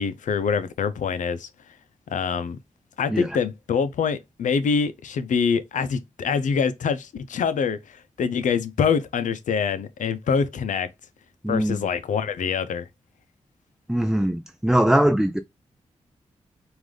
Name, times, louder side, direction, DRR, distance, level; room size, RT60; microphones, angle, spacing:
voice 1, 0.0-1.5 2.1-2.6 3.0-10.9 11.5-12.9, left 6 dB, 85° left, 0.6 m, -25 dB
voice 2, 11.4-11.8 13.9-15.4, right 1 dB, 5° right, 0.5 m, -21 dB
4.8 x 2.6 x 3.8 m
cardioid pair, 55°, 13 cm